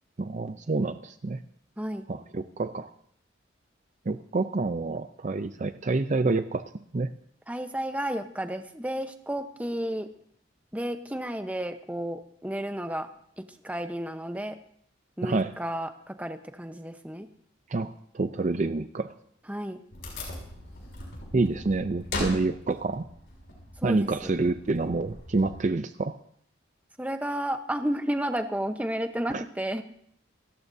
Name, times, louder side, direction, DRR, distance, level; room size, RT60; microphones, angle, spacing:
voice 1, 0.2-1.4 2.1-2.9 4.1-6.6 6.9-7.1 15.2-15.5 17.7-19.1 21.3-23.1 23.8-26.2 29.3-29.4, right 3 dB, 40° right, 10 dB, 0.5 m, -28 dB
voice 2, 7.5-10.1 10.7-13.1 13.4-14.6 15.2-17.3 19.5-19.8 23.8-24.3 27.0-29.8, right 1 dB, 10° right, 7 dB, 0.9 m, -32 dB
Wood, 19.9-25.6, left 2 dB, 70° left, 6.4 m, -39 dB
29.0 x 14.0 x 2.7 m, 0.67 s
head